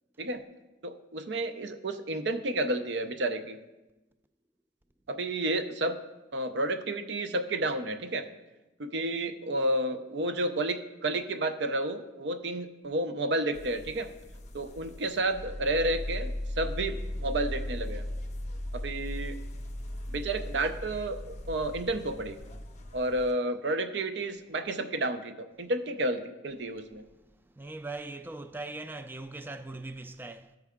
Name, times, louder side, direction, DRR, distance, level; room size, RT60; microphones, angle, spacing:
voice 1, 0.8-3.6 5.1-6.0 6.3-8.3 8.8-14.1 14.5-16.3 16.6-18.1 18.7-19.4 20.1-22.4 22.9-27.0, right 1 dB, 65° right, 0.6 m, -31 dB
sound 1, 13.5-23.3, left 1 dB, 35° left, 0.6 m, -38 dB
voice 2, 27.6-30.6, right 2 dB, 10° right, 0.3 m, -40 dB
13.5 x 4.7 x 3.6 m
head